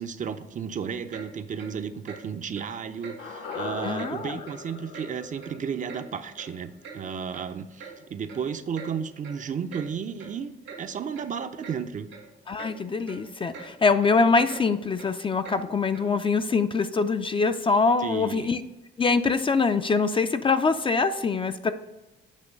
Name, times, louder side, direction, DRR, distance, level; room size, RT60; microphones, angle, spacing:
voice 1, 0.0-10.5 10.8-12.1 18.0-18.5, right 7 dB, 40° right, 10 dB, 0.5 m, -33 dB
Clock, 1.1-1.3 1.6-1.7 2.1-2.2 2.5-2.7 3.0-3.2 3.5-3.6 4.0-4.1 4.5-4.6 4.9-5.1 5.4-6.0 6.4-6.5 6.8-7.0 7.3-7.5 7.8-7.9 8.3-8.4 8.7-8.9 9.2-9.4 9.7-9.9 10.2-10.3 10.6-10.8 11.1-11.3 11.6-11.8 12.1-12.3 12.6-12.7 13.1-13.2 13.5-13.7 14.0-14.1 14.5-14.6 15.0-15.1 15.4-15.6 15.9-16.1, right 6 dB, 80° right, 2.0 m, -43 dB
sound 1, 3.2-7.5 7.8-7.9, left 4 dB, 75° left, 1.2 m, -40 dB
voice 2, 3.8-4.4 12.5-18.6 19.0-21.7, left 4 dB, 25° left, 10 dB, 0.3 m, -24 dB
8.2 x 3.0 x 5.2 m, 1.0 s
cardioid pair, 90°, 20 cm